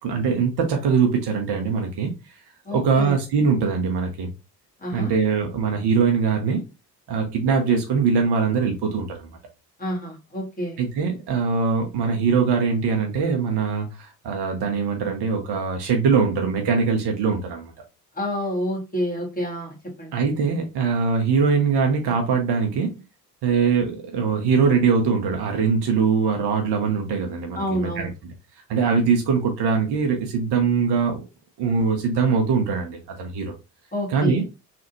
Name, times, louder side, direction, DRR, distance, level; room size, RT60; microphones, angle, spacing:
voice 1, 0.0-2.1 2.7-4.3 4.9-6.6 7.1-9.3 10.8-17.7 20.1-23.0 23.4-28.1 28.7-31.2 31.6-33.5 34.1-34.4, right 5 dB, 55° right, 0.9 m, -22 dB
voice 2, 2.7-3.2 4.8-5.1 9.8-10.8 18.1-20.2 27.6-28.1 33.9-34.4, equal, 15° left, 1.8 m, -28 dB
3.3 x 2.5 x 2.9 m
figure-of-eight pair, 50°, 49 cm